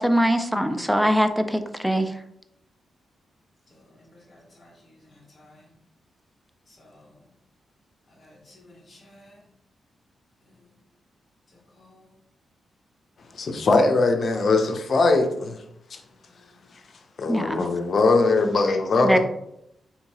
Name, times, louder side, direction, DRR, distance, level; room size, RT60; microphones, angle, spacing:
voice 1, 0.0-2.1 17.3-17.6 19.0-19.2, equal, ahead, 0.4 m, -22 dB
voice 2, 3.7-5.7 6.7-7.1 8.1-9.4 11.8-12.1 16.3-16.5, left 1 dB, 20° left, 1.2 m, -54 dB
voice 3, 13.4-15.6 15.9-16.0 17.2-19.2, left 3 dB, 55° left, 0.6 m, -21 dB
4.4 x 2.8 x 2.8 m
cardioid pair, 85°, 0 cm